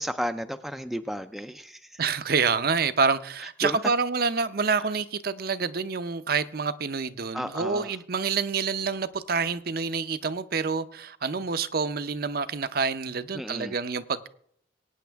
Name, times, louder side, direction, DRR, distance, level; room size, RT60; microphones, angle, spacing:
voice 1, 0.0-2.0 3.6-3.8 7.3-7.9 13.3-13.8, equal, ahead, 0.4 m, -33 dB
voice 2, 2.0-14.3, right 5 dB, 50° right, 0.6 m, -27 dB
22.5 x 9.2 x 3.4 m
head